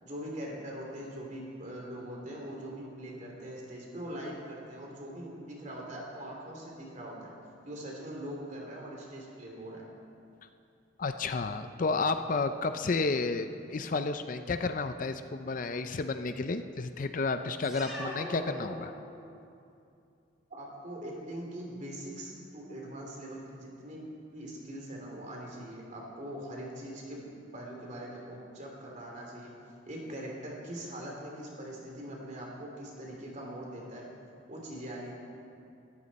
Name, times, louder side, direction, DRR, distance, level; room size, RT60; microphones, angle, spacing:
voice 1, 0.0-7.3 7.6-9.9 20.5-24.0 24.3-27.3 27.5-29.6 29.9-34.1 34.5-35.1, right 1 dB, 40° right, -1 dB, 3.1 m, -42 dB
voice 2, 11.0-18.9, left 3 dB, 45° left, 9 dB, 0.5 m, -31 dB
sound 1, 17.6-19.5, equal, 5° right, 2.9 m, -41 dB
20.0 x 13.5 x 4.2 m, 2.5 s
head